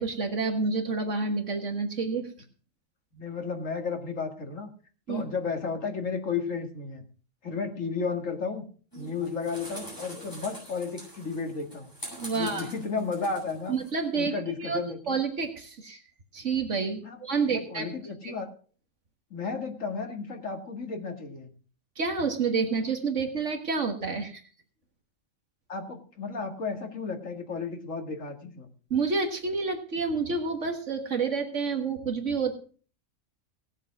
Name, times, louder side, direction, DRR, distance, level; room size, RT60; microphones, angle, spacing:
voice 1, 0.0-2.3 5.1-5.2 12.2-12.7 13.7-14.3 14.6-14.8 15.1-16.0 16.3-18.3 22.0-24.4 28.9-32.5, right 4 dB, 70° right, 5 dB, 1.9 m, -29 dB
voice 2, 3.1-4.7 5.1-7.0 7.4-8.6 9.0-11.9 12.3-13.8 14.1-15.2 17.0-17.2 17.5-18.5 19.3-21.5 25.7-28.7, left 5 dB, 75° left, 4 dB, 2.4 m, -33 dB
sound 1, 8.9-13.9, right 1 dB, 15° left, 6.9 m, -44 dB
18.0 x 7.3 x 6.0 m, 0.42 s
omnidirectional pair, 1.3 m